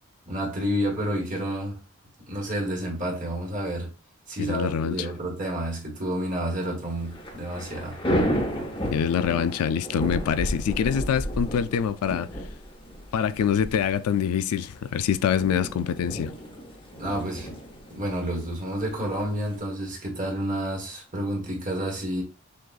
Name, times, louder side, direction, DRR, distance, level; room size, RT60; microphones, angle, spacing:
voice 1, 0.3-1.8 2.3-3.9 4.3-8.0 16.9-17.6 17.9-22.2, right 1 dB, 35° right, 1.2 m, -30 dB
voice 2, 4.4-4.9 8.9-12.3 13.1-16.3, left 8 dB, 85° left, 0.3 m, -25 dB
Thunder / Rain, 6.9-19.6, equal, 25° left, 0.8 m, -33 dB
6.4 x 2.3 x 2.4 m
head